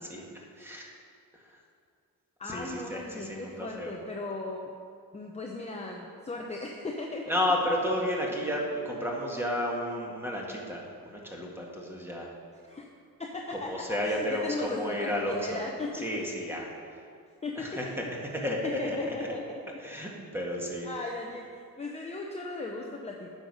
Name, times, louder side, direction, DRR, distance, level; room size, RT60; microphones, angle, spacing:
voice 1, 0.6-0.9 2.4-3.9 7.3-12.3 13.7-15.6 16.0-16.7 17.6-18.2 18.4-19.0 19.8-20.9, left 1 dB, 5° right, -2 dB, 1.7 m, -32 dB
voice 2, 2.4-4.7 5.1-7.4 12.6-12.8 13.2-16.2 17.4-17.7 18.0-18.1 18.6-19.9 20.8-21.5 21.8-23.3, left 2 dB, 20° left, 0 dB, 0.7 m, -37 dB
9.8 x 6.5 x 5.5 m, 2.3 s
cardioid pair, 115°, 36 cm